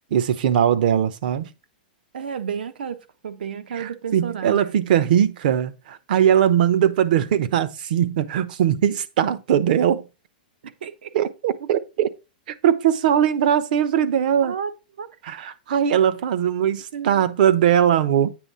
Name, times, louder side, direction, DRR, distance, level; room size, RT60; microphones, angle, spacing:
voice 1, 0.1-1.5 3.7-10.0 11.1-12.1 12.6-14.6 15.2-18.3, right 9 dB, 60° right, 0.9 m, -20 dB
voice 2, 2.1-4.6 10.8-11.1 14.4-14.7 15.0-15.1 16.9-17.2, right 7 dB, 85° right, 1.1 m, -31 dB
8.8 x 3.6 x 5.5 m
supercardioid pair, 150°, 5 cm